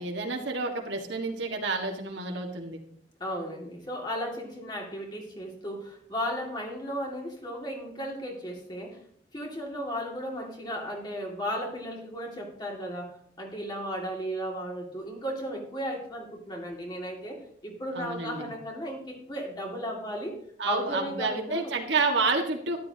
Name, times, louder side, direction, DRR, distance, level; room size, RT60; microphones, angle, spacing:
voice 1, 0.0-2.8 17.9-18.5 20.6-22.8, right 3 dB, 80° right, 1 dB, 1.7 m, -29 dB
voice 2, 3.2-9.0 9.3-20.4 20.6-21.7, equal, 25° left, 0 dB, 2.3 m, -35 dB
13.0 x 11.0 x 2.9 m, 0.64 s
head